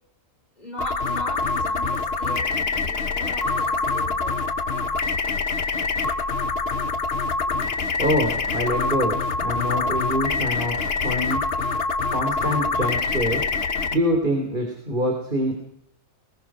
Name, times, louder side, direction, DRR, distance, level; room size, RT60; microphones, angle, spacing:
voice 1, 0.5-4.4, left 1 dB, 30° left, 1 dB, 5.1 m, -39 dB
sound 1, 0.8-13.9, left 4 dB, 45° left, 1.3 m, -25 dB
voice 2, 8.0-10.8 11.0-11.4 12.1-15.5, equal, 35° right, 1 dB, 3.6 m, -25 dB
21.5 x 19.5 x 6.2 m, 0.68 s
omnidirectional pair, 1.5 m